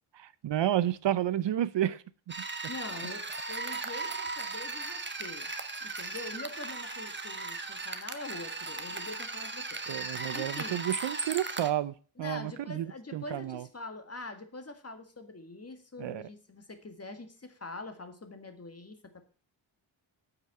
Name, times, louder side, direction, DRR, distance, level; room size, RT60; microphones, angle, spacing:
voice 1, 0.1-2.3 3.7-3.9 9.9-12.9 13.1-13.7 16.0-16.2, right 12 dB, 60° right, 0.6 m, -31 dB
sound 1, 2.3-11.7, right 3 dB, 20° right, 1.2 m, -37 dB
voice 2, 2.7-5.5 5.8-9.8 10.3-10.8 12.2-19.2, left 3 dB, 30° left, 1.9 m, -44 dB
8.8 x 5.9 x 7.6 m
cardioid pair, 75°, 49 cm